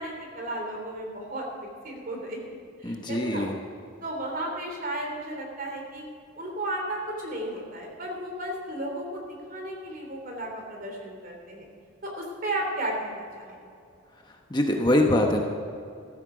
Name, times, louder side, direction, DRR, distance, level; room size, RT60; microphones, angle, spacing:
voice 1, 0.0-3.6 4.0-6.0 6.4-11.7 12.0-13.6, right 1 dB, 40° right, 1 dB, 3.1 m, -34 dB
voice 2, 2.8-3.6 14.3-15.4, left 1 dB, 20° left, 2 dB, 1.0 m, -24 dB
14.5 x 13.5 x 5.0 m, 2.5 s
head